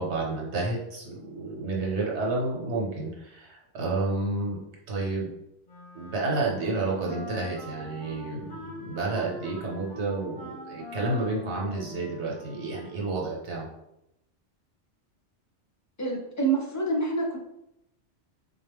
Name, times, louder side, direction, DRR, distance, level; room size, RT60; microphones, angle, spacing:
voice 1, 0.0-4.6 4.9-5.3 5.9-13.7, right 3 dB, 70° right, -3 dB, 1.2 m, -30 dB
Wind instrument woodwind instrument, 5.7-13.2, left 2 dB, 80° left, 1.4 m, -43 dB
voice 2, 16.0-17.4, right 3 dB, 25° left, -1 dB, 0.4 m, -27 dB
4.0 x 2.1 x 3.5 m, 0.83 s
omnidirectional pair, 1.2 m